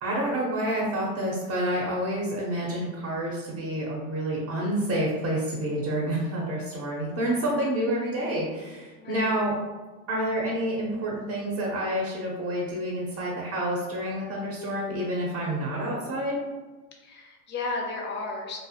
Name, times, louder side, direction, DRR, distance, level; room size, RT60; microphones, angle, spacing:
voice 1, 0.0-9.5 10.1-16.4, right 1 dB, 40° right, -3 dB, 0.6 m, -28 dB
voice 2, 9.0-9.4 17.0-18.6, left 3 dB, 25° left, 0 dB, 0.4 m, -34 dB
2.4 x 2.1 x 2.7 m, 1.2 s
supercardioid pair, 110°, 43 cm